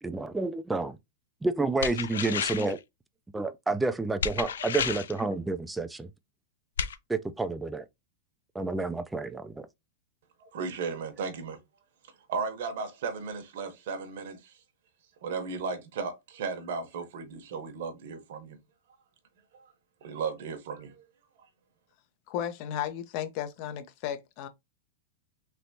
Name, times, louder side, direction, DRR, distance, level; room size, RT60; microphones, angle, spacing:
voice 1, 0.0-1.0 1.4-2.8 3.3-6.1 7.1-7.9 8.5-9.7, right 3 dB, 10° right, 0.4 m, -30 dB
sound 1, 1.8-2.8 4.2-5.2 6.8-6.9, left 7 dB, 85° left, 0.4 m, -31 dB
voice 2, 10.4-11.6 12.3-14.6 15.2-18.6 19.5-19.7 20.0-21.1, right 5 dB, 65° right, 0.9 m, -35 dB
voice 3, 22.3-24.5, left 10 dB, 50° left, 0.7 m, -34 dB
3.3 x 2.9 x 2.7 m
hypercardioid pair, 120°, 0 cm